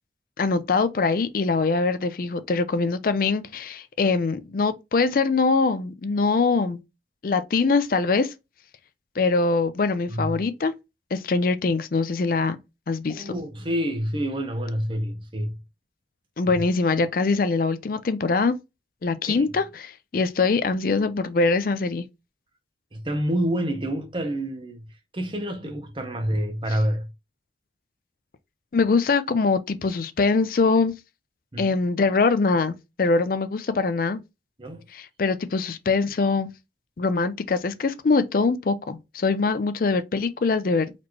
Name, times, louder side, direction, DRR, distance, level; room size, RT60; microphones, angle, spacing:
voice 1, 0.4-6.8 7.2-8.3 9.2-10.7 11.1-12.6 12.9-13.3 16.4-18.6 19.0-22.1 28.7-31.0 31.6-34.2 34.9-36.5 37.0-40.9, left 4 dB, 50° left, 0.4 m, -23 dB
voice 2, 13.1-15.6 19.3-19.5 22.9-24.8 25.1-27.1 31.5-31.7 34.6-34.9 39.5-39.6, equal, 25° right, 0.8 m, -28 dB
4.1 x 3.0 x 3.0 m
head